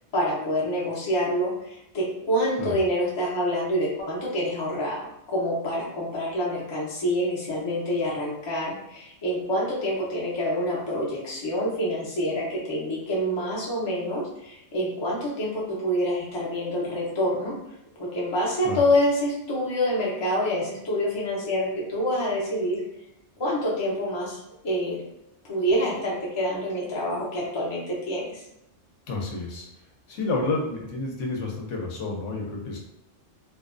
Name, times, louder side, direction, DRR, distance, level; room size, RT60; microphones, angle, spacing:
voice 1, 0.1-17.5 18.0-22.8 23.4-25.0 25.4-28.4, equal, 35° left, -5 dB, 0.4 m, -27 dB
voice 2, 29.1-29.7 30.1-32.8, left 3 dB, 75° left, 0 dB, 0.9 m, -30 dB
2.4 x 2.1 x 2.4 m, 0.82 s
omnidirectional pair, 1.3 m